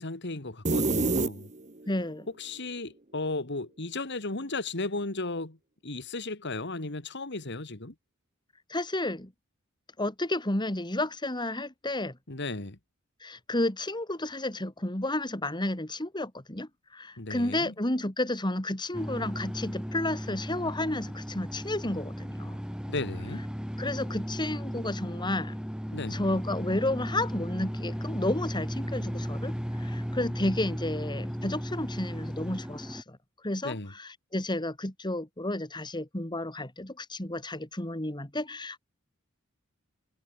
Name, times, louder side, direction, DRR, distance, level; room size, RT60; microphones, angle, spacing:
voice 1, 0.0-1.5 2.4-5.6 5.8-7.9 12.3-12.8 17.2-17.7 22.9-23.5 25.9-26.2 33.6-33.9, left 2 dB, 55° left, 2.4 m, -35 dB
sound 1, 0.6-1.9, right 2 dB, 35° right, 1.6 m, -26 dB
voice 2, 1.9-2.3 8.7-9.3 10.0-12.1 13.2-22.6 23.8-25.6 26.1-33.2 33.4-38.8, left 1 dB, 20° left, 2.9 m, -32 dB
sound 2, 18.9-33.0, equal, 5° right, 3.7 m, -35 dB
head